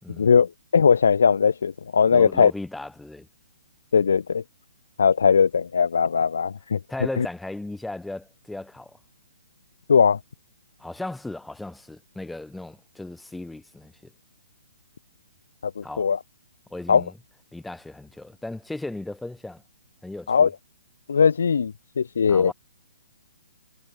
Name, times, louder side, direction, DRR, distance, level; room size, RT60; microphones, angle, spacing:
voice 1, 0.2-2.5 3.9-4.4 5.0-6.8 7.2-7.3 9.9-10.2 15.8-16.2 16.9-17.0 20.3-20.5 21.1-22.5, left 6 dB, 65° left, 2.5 m, -19 dB
voice 2, 2.1-3.3 6.9-9.0 10.8-14.1 15.8-16.1 16.7-17.1 17.5-19.6 20.0-20.5 22.3-22.5, left 2 dB, 5° left, 7.5 m, -36 dB
figure-of-eight pair, 130°, 0 cm